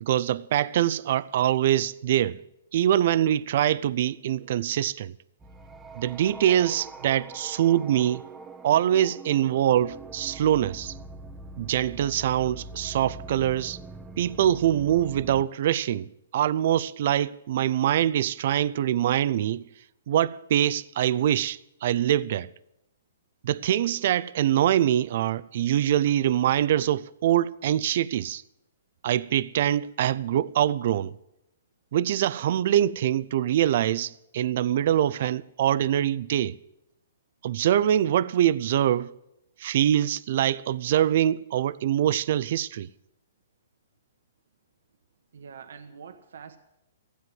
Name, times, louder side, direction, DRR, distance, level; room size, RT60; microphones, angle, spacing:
voice 1, 0.0-2.4 2.7-5.1 5.9-8.2 8.6-10.9 11.6-13.8 14.2-19.6 20.1-22.5 23.4-28.4 29.0-31.1 31.9-36.6 37.4-39.1 39.6-42.9, right 11 dB, 55° right, 0.4 m, -24 dB
sound 1, 5.4-15.4, right 2 dB, 10° right, 0.9 m, -43 dB
voice 2, 45.3-46.6, right 6 dB, 75° right, 1.2 m, -44 dB
15.5 x 9.5 x 7.7 m
hypercardioid pair, 150°, 0 cm